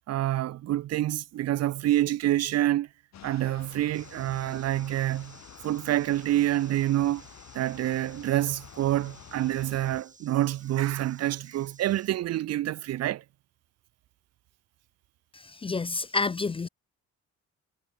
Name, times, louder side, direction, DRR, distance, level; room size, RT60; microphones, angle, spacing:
voice 1, 0.1-2.9 3.2-5.4 5.6-7.2 7.5-13.2, right 14 dB, 55° right, 0.5 m, -27 dB
sound 1, 3.1-10.0, left 11 dB, 65° left, 1.8 m, -50 dB
sound 2, 3.9-12.1, right 4 dB, 25° right, 5.3 m, -55 dB
voice 2, 15.3-16.7, left 3 dB, 20° left, 0.4 m, -29 dB
cardioid pair, 90°, 30 cm